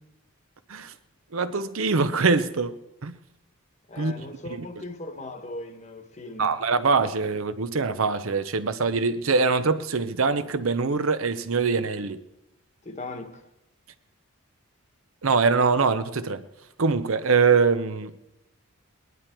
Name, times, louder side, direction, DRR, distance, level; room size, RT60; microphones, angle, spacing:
voice 1, 1.3-2.8 3.0-3.1 4.0-4.7 6.4-12.2 15.2-16.5 16.8-18.1, right 4 dB, 70° right, 0.7 m, -23 dB
voice 2, 3.9-6.6 12.8-13.4, left 2 dB, 30° left, 1.2 m, -38 dB
20.5 x 11.0 x 4.5 m
head